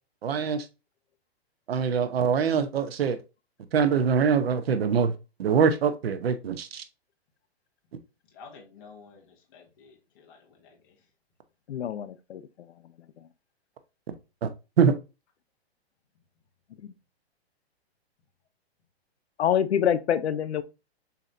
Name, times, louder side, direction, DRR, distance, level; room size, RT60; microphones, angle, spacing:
voice 1, 0.2-0.6 1.7-3.2 3.7-5.1 5.4-6.8 14.4-14.5 14.8-14.9, right 6 dB, 65° right, 0.9 m, -23 dB
voice 2, 8.3-11.1, left 5 dB, 20° left, 0.7 m, -51 dB
voice 3, 11.7-12.4 16.8-16.9 19.4-20.6, left 9 dB, 80° left, 0.7 m, -26 dB
6.8 x 2.9 x 2.5 m
hypercardioid pair, 170°, 32 cm